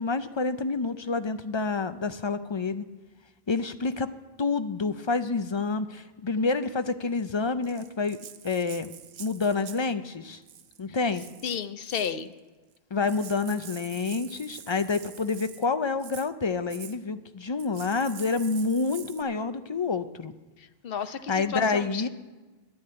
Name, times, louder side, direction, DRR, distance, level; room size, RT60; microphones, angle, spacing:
voice 1, 0.0-2.8 3.5-4.1 4.4-8.2 8.4-8.9 9.2-10.4 10.8-11.2 12.9-20.3 21.3-22.1, left 4 dB, 40° left, 11 dB, 0.4 m, -28 dB
Rattle (instrument), 7.6-9.9 10.4-10.8 11.1-12.2 12.7-12.8 13.0-15.7 16.0-16.3 16.7-17.0 17.6-19.2, right 9 dB, 85° right, 0.9 m, -46 dB
voice 2, 11.4-12.3 20.6-22.1, left 7 dB, 65° left, 12 dB, 0.8 m, -32 dB
11.0 x 7.9 x 8.7 m, 1.2 s
omnidirectional pair, 1.0 m